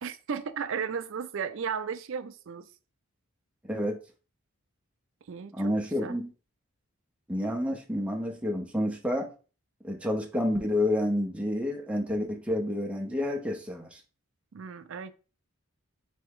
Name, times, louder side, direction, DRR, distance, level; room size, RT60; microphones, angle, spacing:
voice 1, 0.0-2.7 5.3-5.7 6.0-6.2 14.5-15.1, right 6 dB, 60° right, 0.4 m, -35 dB
voice 2, 5.5-6.3 7.3-9.3 9.8-14.0, left 1 dB, 5° right, 0.6 m, -29 dB
4.1 x 3.4 x 3.5 m
head